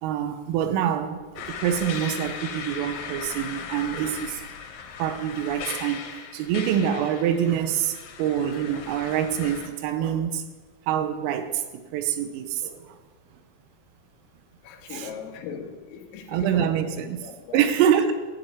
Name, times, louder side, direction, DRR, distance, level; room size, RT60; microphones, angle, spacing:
voice 1, 0.0-4.4 5.0-10.4 10.9-11.6 11.9-13.0 14.9-15.1 16.3-17.2 17.5-18.1, right 9 dB, 90° right, 9 dB, 3.4 m, -25 dB
sound 1, 1.4-9.7, left 6 dB, 70° left, 2.9 m, -38 dB
voice 2, 14.6-16.8 17.0-17.7, left 6 dB, 85° left, 4 dB, 3.8 m, -39 dB
13.5 x 5.2 x 8.6 m, 1.3 s
omnidirectional pair, 5.9 m